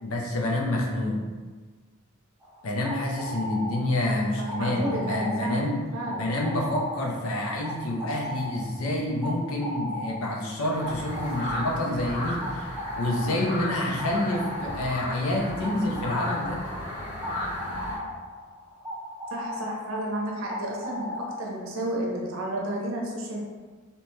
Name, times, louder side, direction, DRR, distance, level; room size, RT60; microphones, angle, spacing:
voice 1, 0.0-1.2 2.6-5.8 6.2-12.7 13.0-16.6, left 1 dB, 80° left, -1 dB, 0.6 m, -28 dB
sound 1, 2.4-21.9, left 1 dB, 10° right, 0.4 m, -38 dB
voice 2, 4.1-5.7 5.9-6.3 19.3-23.4, right 1 dB, 70° right, -2 dB, 0.6 m, -32 dB
sound 2, 10.7-18.0, left 1 dB, 50° left, 1.0 m, -35 dB
2.8 x 2.1 x 3.1 m, 1.4 s
head